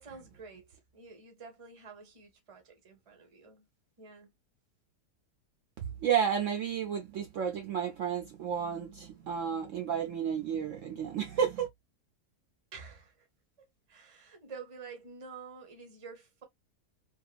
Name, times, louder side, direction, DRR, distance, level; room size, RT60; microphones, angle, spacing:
voice 1, 0.0-3.7 4.0-4.3 12.7-13.3 13.9-16.4, right 5 dB, 30° right, 0.7 m, -49 dB
voice 2, 5.8-11.7, right 8 dB, 65° right, 0.9 m, -32 dB
2.7 x 2.3 x 2.3 m
omnidirectional pair, 1.7 m